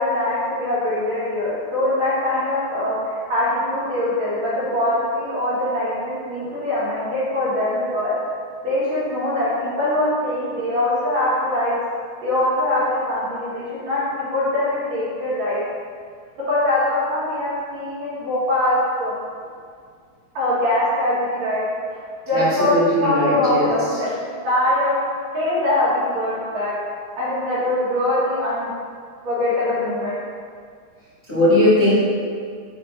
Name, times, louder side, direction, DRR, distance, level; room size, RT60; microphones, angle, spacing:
voice 1, 0.0-8.1 8.6-11.7 12.2-14.0 14.3-15.6 16.5-19.1 20.3-21.6 21.9-22.0 22.3-22.7 23.0-24.9 25.3-26.7 27.2-28.7 29.2-30.2, left 1 dB, 60° right, -9 dB, 3.0 m, -22 dB
voice 2, 22.3-23.7 31.3-31.9, left 1 dB, 30° left, -13 dB, 1.4 m, -18 dB
6.9 x 3.2 x 5.7 m, 2.1 s
omnidirectional pair, 3.8 m